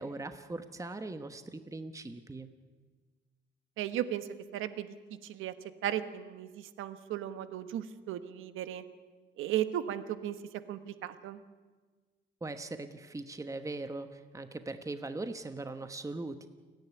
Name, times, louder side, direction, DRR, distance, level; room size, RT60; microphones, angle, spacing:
voice 1, 0.0-2.5 12.4-16.5, right 2 dB, 15° right, 9 dB, 1.2 m, -40 dB
voice 2, 3.8-4.9 5.2-5.5 5.8-8.8 9.4-11.4, right 11 dB, 90° right, 11 dB, 1.3 m, -36 dB
29.0 x 10.5 x 9.7 m, 1.4 s
cardioid pair, 90°, 20 cm